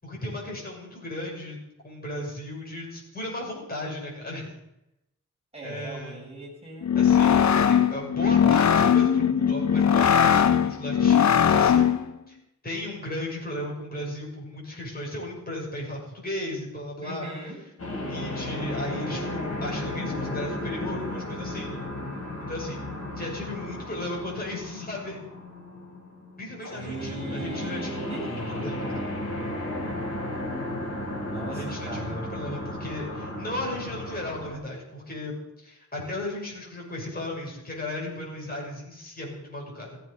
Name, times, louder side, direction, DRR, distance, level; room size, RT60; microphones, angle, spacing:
voice 1, 0.0-1.6 1.8-4.6 5.6-6.2 6.9-11.9 12.3-12.4 12.6-17.3 18.1-21.8 22.5-22.8 23.2-25.2 26.4-29.1 31.5-40.0, left 1 dB, 30° left, -3 dB, 6.6 m, -35 dB
voice 2, 5.5-6.9 17.0-17.6 26.7-28.8 31.3-32.4, right 2 dB, 20° right, -3 dB, 7.0 m, -38 dB
sound 1, 6.8-12.1, left 8 dB, 60° left, 0.8 m, -20 dB
sound 2, 17.8-34.5, left 1 dB, 45° left, 5.7 m, -34 dB
16.5 x 15.0 x 5.7 m, 0.88 s
wide cardioid pair, 155°, 31 cm